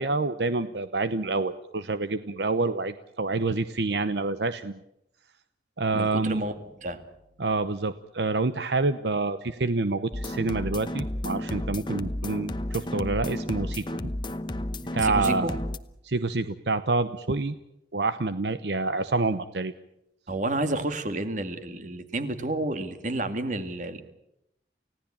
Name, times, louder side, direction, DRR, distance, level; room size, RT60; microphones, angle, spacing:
voice 1, 0.0-4.8 5.8-6.4 7.4-13.8 14.9-15.6 16.0-17.6 17.9-19.7, right 3 dB, 75° right, 12 dB, 0.9 m, -27 dB
voice 2, 5.9-7.0 15.0-15.5 20.3-24.0, right 2 dB, 45° right, 9 dB, 2.1 m, -30 dB
sound 1, 10.1-15.8, left 1 dB, 25° left, 0.9 m, -32 dB
29.5 x 17.0 x 8.7 m, 0.83 s
head